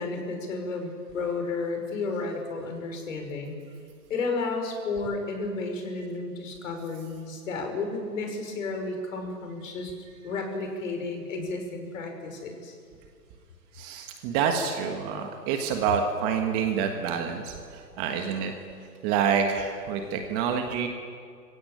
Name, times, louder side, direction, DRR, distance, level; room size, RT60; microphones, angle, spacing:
voice 1, 0.0-3.6 4.1-9.9 10.2-12.8, left 3 dB, 50° left, 4 dB, 5.7 m, -32 dB
voice 2, 13.7-18.5 19.0-20.9, right 7 dB, 20° right, 5 dB, 1.5 m, -27 dB
25.5 x 16.5 x 8.8 m, 2.2 s
hypercardioid pair, 145°, 50 cm